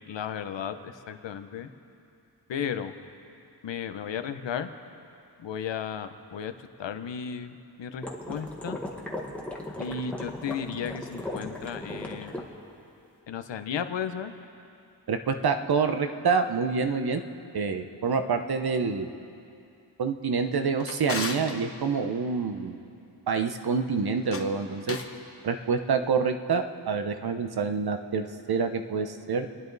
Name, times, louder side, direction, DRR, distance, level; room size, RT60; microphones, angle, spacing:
voice 1, 0.1-1.7 2.5-2.9 3.6-4.7 5.4-6.5 6.8-8.8 9.8-12.5 13.3-14.3, left 7 dB, 85° left, 9 dB, 0.9 m, -34 dB
sound 1, 8.0-12.4, left 1 dB, 5° left, 1.5 m, -37 dB
voice 2, 15.1-17.2 17.5-19.1 20.0-22.8 23.3-25.0 25.4-29.5, right 5 dB, 60° right, 7 dB, 0.9 m, -27 dB
Drawer open or close, 20.4-21.6 24.1-25.2, left 4 dB, 30° left, 1.0 m, -36 dB
29.0 x 10.5 x 4.0 m, 2.6 s
wide cardioid pair, 135°, 43 cm